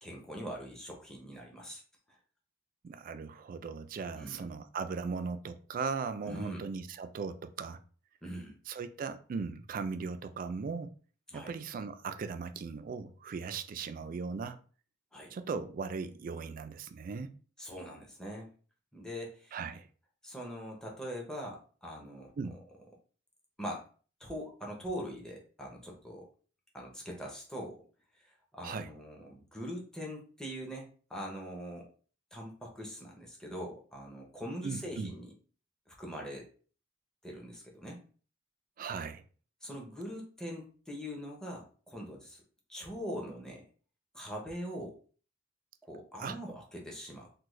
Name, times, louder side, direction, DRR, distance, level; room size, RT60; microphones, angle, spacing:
voice 1, 0.0-1.8 2.1-2.2 4.1-4.5 6.3-6.7 8.2-8.6 11.3-11.5 15.1-15.3 17.6-18.5 18.9-19.6 20.2-22.3 23.6-23.8 24.2-26.3 26.7-27.8 28.2-31.9 32.3-35.3 35.9-36.5 37.2-38.0 39.6-42.4 42.7-43.6 44.1-45.0 45.8-47.3, equal, 5° left, 0.7 m, -42 dB
voice 2, 2.8-7.8 8.7-11.0 11.3-14.6 15.3-17.3 19.5-19.9 22.4-22.5 28.6-28.9 34.6-35.1 38.8-39.2 46.2-46.4, right 5 dB, 50° right, 0.3 m, -38 dB
3.5 x 2.2 x 3.1 m
head